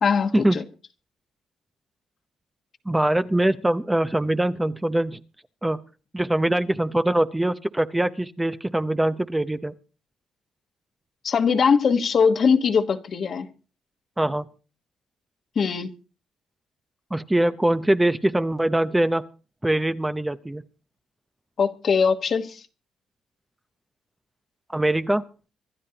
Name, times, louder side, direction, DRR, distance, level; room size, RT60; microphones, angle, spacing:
voice 1, 0.0-0.6 11.2-13.5 15.5-15.9 21.6-22.6, left 6 dB, 50° left, 1.3 m, -21 dB
voice 2, 2.9-5.2 5.6-5.8 6.1-9.7 14.2-14.5 17.1-19.2 19.6-20.6 24.7-25.2, right 1 dB, 10° right, 0.7 m, -23 dB
25.5 x 12.0 x 2.9 m
cardioid pair, 90°, 0 cm